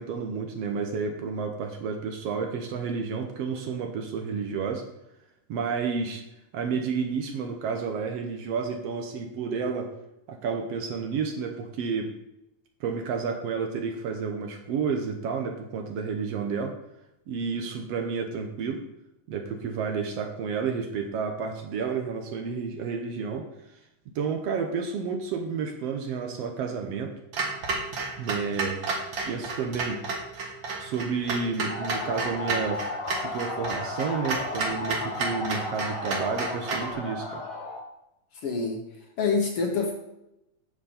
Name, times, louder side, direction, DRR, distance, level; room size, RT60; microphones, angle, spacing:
voice 1, 0.0-4.9 5.5-6.2 6.5-9.9 10.3-12.1 12.8-16.8 17.3-18.8 19.3-23.5 24.2-27.1 28.2-28.9 29.3-30.0 30.8-37.4, right 5 dB, 70° right, 4 dB, 1.8 m, -31 dB
Clock, 27.3-36.9, right 3 dB, 50° right, 1.9 m, -31 dB
sound 1, 31.6-37.8, left 2 dB, 45° left, 1.1 m, -34 dB
voice 2, 38.3-38.8 39.2-39.9, left 4 dB, 65° left, 3 dB, 1.6 m, -26 dB
9.4 x 7.4 x 4.3 m, 0.87 s
omnidirectional pair, 3.3 m